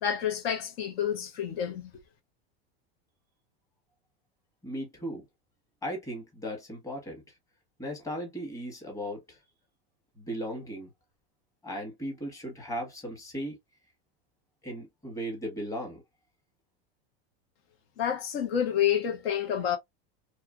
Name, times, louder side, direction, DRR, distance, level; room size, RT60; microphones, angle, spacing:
voice 1, 0.0-1.9 18.0-19.8, left 9 dB, 75° left, 1.0 m, -28 dB
voice 2, 4.6-5.2 5.8-7.2 7.8-9.4 10.2-10.9 11.6-13.6 14.6-16.0, equal, 10° left, 1.1 m, -37 dB
2.8 x 2.5 x 2.3 m
supercardioid pair, 145°, 30 cm